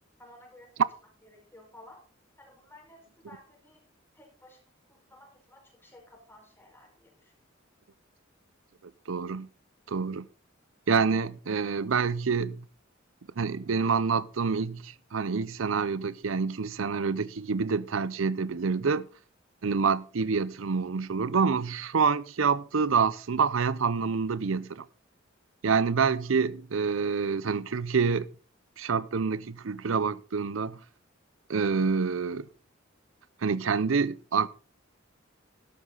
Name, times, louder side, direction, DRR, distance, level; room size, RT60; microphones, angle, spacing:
voice 1, 0.2-0.9 1.2-2.1 2.4-3.8 4.1-4.6 4.9-7.3, left 1 dB, 10° left, 4.9 m, -54 dB
voice 2, 9.1-9.5 9.9-10.3 10.9-12.6 13.4-19.1 19.6-24.8 25.6-28.3 28.8-30.8 31.5-32.5 33.4-34.5, right 5 dB, 80° right, 0.6 m, -27 dB
12.5 x 12.0 x 3.9 m
head